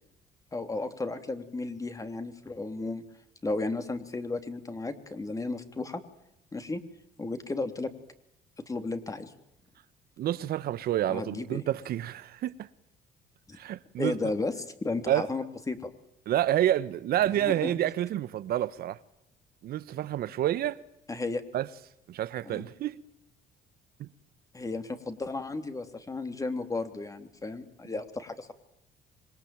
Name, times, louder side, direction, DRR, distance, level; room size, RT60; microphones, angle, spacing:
voice 1, 0.5-3.0 3.4-6.0 6.5-6.8 7.2-7.9 8.7-9.3 11.1-11.6 13.5-13.6 14.0-14.5 14.8-15.9 17.2-17.7 21.1-21.4 22.5-22.7 24.5-28.5, left 3 dB, 20° left, 3.4 m, -34 dB
voice 2, 10.2-12.7 13.5-14.1 15.1-15.3 16.3-19.0 19.6-20.8 21.5-21.7 22.1-23.0 24.0-24.1, right 12 dB, 65° right, 1.4 m, -28 dB
26.5 x 22.5 x 9.1 m
cardioid pair, 110°, 17 cm